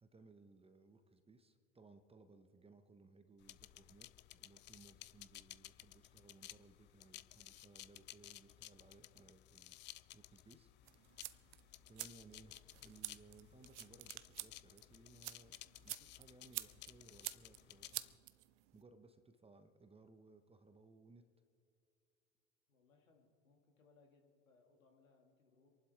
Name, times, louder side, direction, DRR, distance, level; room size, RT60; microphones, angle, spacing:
voice 1, 0.0-9.8 10.1-11.3 11.9-18.1 18.7-21.2, right 3 dB, 15° right, 9 dB, 1.1 m, -63 dB
sound 1, 3.4-18.2, left 15 dB, 30° left, 0.4 m, -57 dB
sound 2, 10.8-18.8, right 17 dB, 60° right, 0.7 m, -50 dB
voice 2, 22.7-25.7, left 4 dB, 75° left, 2 dB, 2.3 m, -70 dB
27.5 x 11.5 x 3.6 m, 2.6 s
figure-of-eight pair, 75°, 41 cm